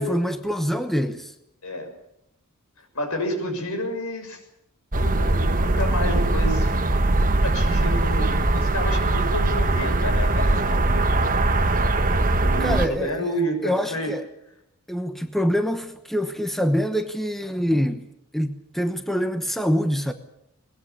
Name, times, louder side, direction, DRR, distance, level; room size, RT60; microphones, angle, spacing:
voice 1, 0.0-1.3 12.6-13.3 13.6-14.2 14.9-18.1 18.3-20.1, equal, ahead, 1.0 m, -25 dB
voice 2, 2.9-4.4 4.9-7.1 7.4-11.1 12.4-14.1, equal, 75° left, 6.4 m, -30 dB
sound 1, 4.9-12.9, right 2 dB, 40° right, 1.3 m, -21 dB
21.5 x 20.0 x 8.4 m
head